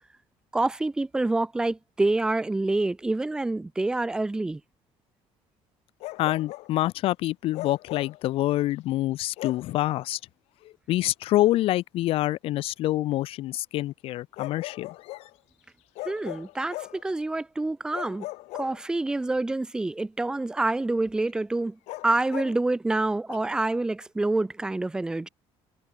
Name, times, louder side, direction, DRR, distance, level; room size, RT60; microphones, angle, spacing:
voice 1, 0.5-4.6 16.1-18.3 18.6-21.8 22.0-25.3, right 2 dB, 5° right, 0.3 m, -27 dB
Bark, 6.0-6.7 7.5-8.2 9.4-9.7 11.4-11.6 14.4-15.3 16.0-17.1 17.9-19.2 21.9-22.6, left 20 dB, 85° left, 1.2 m, -38 dB
voice 2, 6.2-10.2 10.9-14.9 23.3-23.4, left 15 dB, 55° left, 0.5 m, -26 dB
cardioid pair, 165°, 11 cm